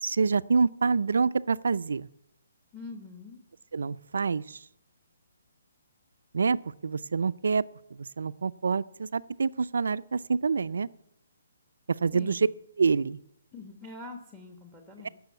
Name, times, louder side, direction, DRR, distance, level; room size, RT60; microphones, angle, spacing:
voice 1, 0.0-2.1 3.7-4.6 6.3-6.6 6.8-7.6 7.9-10.9 12.0-12.5 12.8-13.2 15.0-15.1, right 5 dB, 80° right, 15 dB, 0.5 m, -26 dB
voice 2, 2.7-3.4 12.1-12.4 13.5-15.1, left 3 dB, 5° left, 3 dB, 1.1 m, -44 dB
16.5 x 6.3 x 8.4 m, 0.81 s
hypercardioid pair, 165°, 0 cm